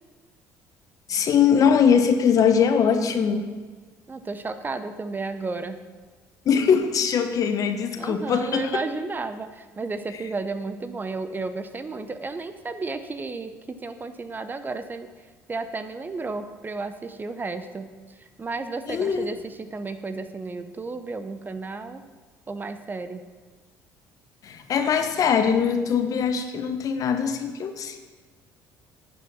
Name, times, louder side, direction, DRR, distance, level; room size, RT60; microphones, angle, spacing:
voice 1, 1.1-3.5 6.5-8.8 18.9-19.3 24.4-28.0, left 7 dB, 55° left, 8 dB, 1.1 m, -21 dB
voice 2, 4.1-5.8 8.0-13.5 13.8-15.1 15.5-17.9 18.4-22.0 22.5-23.2, right 3 dB, 25° right, 10 dB, 0.8 m, -33 dB
9.3 x 7.6 x 6.2 m, 1.4 s
supercardioid pair, 70°, 7 cm